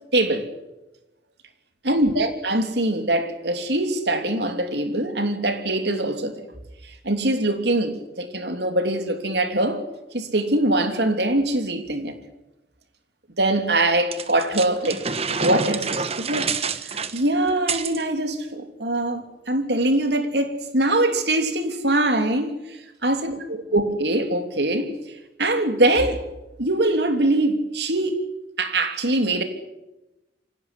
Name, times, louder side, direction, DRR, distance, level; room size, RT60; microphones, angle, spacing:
voice 1, 0.1-0.5 1.8-6.4 6.8-9.8 10.1-12.1 13.4-16.5 16.8-23.3 23.7-24.9 25.4-26.2 26.6-28.2 28.6-29.4, right 1 dB, 75° right, 3.2 m, -23 dB
sound 1, 14.1-18.0, right 5 dB, 35° right, 1.4 m, -27 dB
25.0 x 17.5 x 10.0 m
head